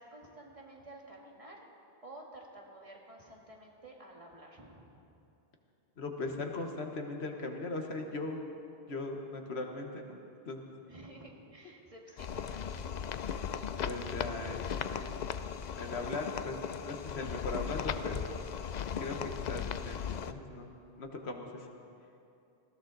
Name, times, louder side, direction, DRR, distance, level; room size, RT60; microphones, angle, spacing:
voice 1, 0.0-1.7 2.0-5.0 10.9-13.1, right 1 dB, 35° right, -1 dB, 1.8 m, -52 dB
voice 2, 6.0-8.4 8.9-10.2 10.4-10.6 13.8-14.6 14.9-15.1 15.8-16.6 16.8-18.2 19.0-20.7 21.0-21.7, left 2 dB, 80° left, 3 dB, 1.5 m, -39 dB
sound 1, 12.2-20.3, left 7 dB, 55° left, 0.5 m, -37 dB
20.0 x 15.5 x 3.9 m, 2.7 s
omnidirectional pair, 1.1 m